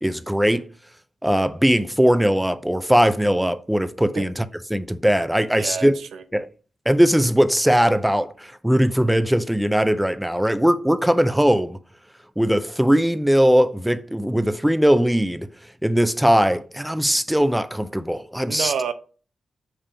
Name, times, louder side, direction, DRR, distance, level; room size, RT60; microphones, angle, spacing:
voice 1, 0.0-0.7 1.2-4.4 4.7-5.9 6.3-6.5 6.9-11.8 12.4-15.5 15.8-18.7, equal, 5° right, 0.4 m, -20 dB
voice 2, 5.5-6.2 18.5-18.9, right 6 dB, 85° right, 0.7 m, -28 dB
5.0 x 3.7 x 5.5 m
cardioid pair, 100°, 0 cm